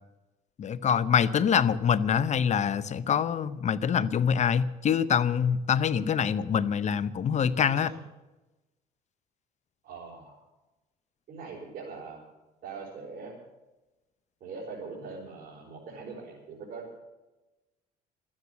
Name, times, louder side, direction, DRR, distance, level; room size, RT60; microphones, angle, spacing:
voice 1, 0.6-7.9, left 7 dB, 45° left, 16 dB, 0.7 m, -25 dB
voice 2, 9.8-10.4 11.3-12.2 12.6-13.3 14.4-16.9, right 4 dB, 55° right, -5 dB, 4.8 m, -42 dB
13.0 x 9.6 x 9.6 m, 1.1 s
cardioid pair, 110°, 17 cm